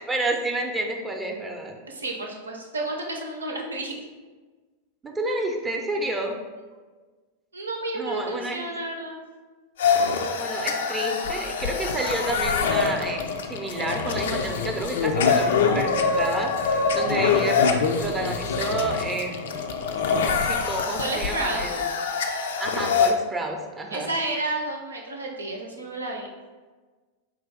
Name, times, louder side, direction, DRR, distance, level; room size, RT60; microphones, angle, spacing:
voice 1, 0.0-1.8 5.0-6.4 7.9-8.6 10.3-19.7 20.1-21.8 22.6-24.1, right 2 dB, 15° right, 2 dB, 0.6 m, -30 dB
voice 2, 1.9-4.0 7.5-9.2 21.0-21.7 23.9-26.3, right 2 dB, 75° right, 1 dB, 0.7 m, -31 dB
sound 1, 9.8-23.1, left 5 dB, 60° left, 0.4 m, -24 dB
4.8 x 3.0 x 3.4 m, 1.4 s
figure-of-eight pair, 90°, 0 cm